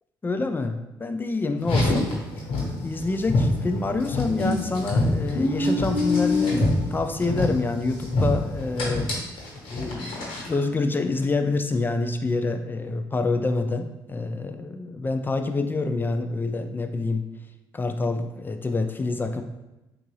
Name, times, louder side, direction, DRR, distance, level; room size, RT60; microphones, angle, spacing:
voice 1, 0.2-2.1 2.8-9.1 9.7-17.2 17.7-19.4, left 3 dB, 20° left, 7 dB, 0.3 m, -27 dB
Car, 1.6-10.6, left 2 dB, 75° left, 1.1 m, -26 dB
3.7 x 2.5 x 3.1 m, 0.99 s
cardioid pair, 75°, 9 cm